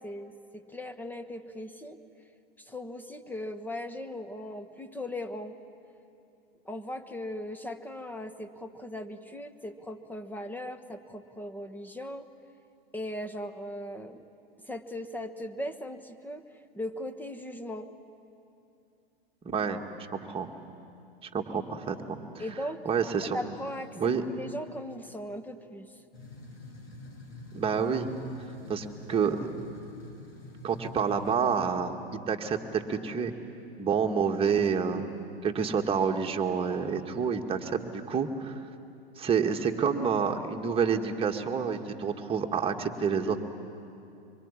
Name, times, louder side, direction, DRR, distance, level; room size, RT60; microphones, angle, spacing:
voice 1, 0.0-2.0 2.6-5.6 6.6-12.3 12.9-14.2 14.6-16.4 16.7-17.9 22.4-22.8 23.2-25.9, left 1 dB, 5° left, 9 dB, 1.3 m, -38 dB
voice 2, 19.4-19.8 20.1-20.5 21.2-22.2 22.9-23.4 24.0-24.2 27.5-28.1 28.7-29.5 30.6-32.0 32.3-33.3 33.8-35.1 35.4-38.6 39.2-43.4, right 6 dB, 20° right, 3 dB, 1.9 m, -28 dB
sound 1, 26.1-31.7, left 1 dB, 80° left, 6.9 m, -46 dB
24.5 x 24.0 x 9.9 m, 2.7 s
hypercardioid pair, 115°, 30 cm